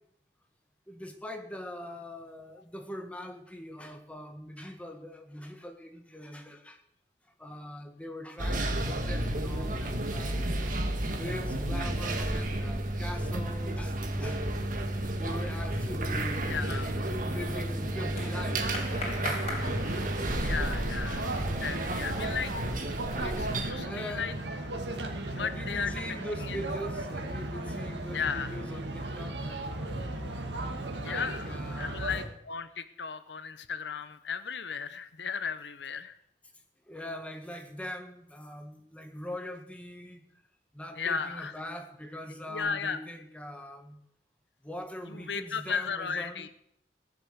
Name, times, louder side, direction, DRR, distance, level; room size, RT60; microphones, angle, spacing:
voice 1, 0.9-6.8 7.4-10.9 11.2-14.4 15.2-16.6 17.0-18.8 19.1-19.5 20.2-20.5 21.4-21.5 23.8-24.4 24.8-24.9 25.3-30.0 31.0-32.2 36.9-40.2 40.7-44.0 44.6-46.5, left 1 dB, 5° left, 4 dB, 1.8 m, -42 dB
sound 1, 8.4-23.7, right 1 dB, 50° right, 1.8 m, -32 dB
sound 2, 14.9-20.6, left 1 dB, 35° left, 4.2 m, -41 dB
voice 2, 16.5-16.9 20.1-20.2 20.4-21.3 21.6-22.6 23.2-24.3 25.3-26.0 26.5-26.6 28.1-28.5 31.0-36.2 41.0-41.5 42.5-43.0 45.1-46.5, left 6 dB, 85° left, 12 dB, 0.9 m, -35 dB
sound 3, 19.6-32.3, right 1 dB, 85° right, 2.2 m, -36 dB
18.0 x 7.6 x 8.1 m, 0.71 s
head